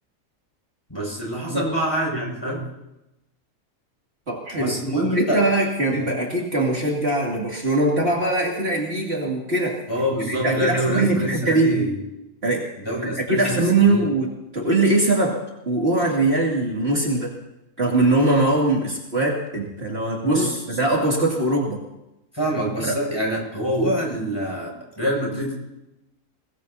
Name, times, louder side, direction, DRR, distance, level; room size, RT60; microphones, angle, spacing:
voice 1, 0.9-2.6 4.6-5.4 5.9-6.1 9.9-12.0 12.8-13.6 13.8-14.1 20.2-20.6 22.3-25.5, equal, 20° left, -2 dB, 6.2 m, -25 dB
voice 2, 4.3-4.8 5.1-9.8 10.2-11.8 12.4-12.7 13.0-15.4 15.7-17.3 17.8-21.8 22.8-23.0, right 2 dB, 50° right, -3 dB, 2.8 m, -21 dB
23.0 x 19.5 x 2.8 m, 0.92 s
omnidirectional pair, 1.4 m